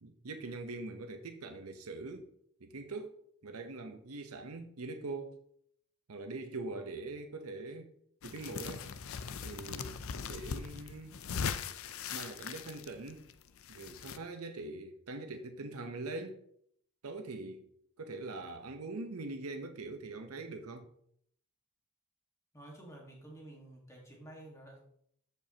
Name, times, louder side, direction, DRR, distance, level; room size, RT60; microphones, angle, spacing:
voice 1, 0.0-2.3 2.6-5.4 6.1-7.9 8.2-8.9 9.4-9.9 10.2-11.1 12.1-13.3 13.7-16.4 17.0-17.6 18.0-20.9, right 3 dB, 85° right, 0.8 m, -43 dB
sound 1, 8.2-14.2, left 6 dB, 70° left, 0.5 m, -40 dB
voice 2, 22.5-24.8, right 1 dB, 15° left, 1.6 m, -51 dB
14.0 x 5.4 x 2.9 m
head